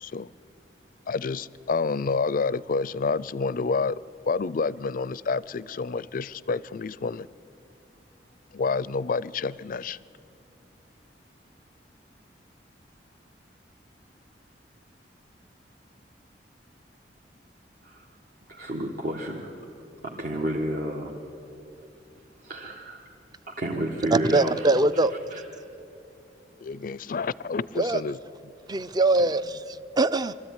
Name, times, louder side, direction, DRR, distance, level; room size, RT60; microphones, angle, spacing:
voice 1, 1.1-4.0 4.3-7.3 8.5-10.0 26.6-28.2, left 4 dB, 50° left, 20 dB, 0.4 m, -28 dB
voice 2, 18.5-19.7 20.0-21.1 22.4-23.0 23.6-24.7 25.3-25.4, right 1 dB, 55° right, -2 dB, 1.7 m, -31 dB
voice 3, 24.1-25.1 27.8-28.0 28.7-30.3, right 2 dB, 25° right, 14 dB, 0.5 m, -22 dB
23.5 x 13.5 x 9.7 m, 2.8 s
head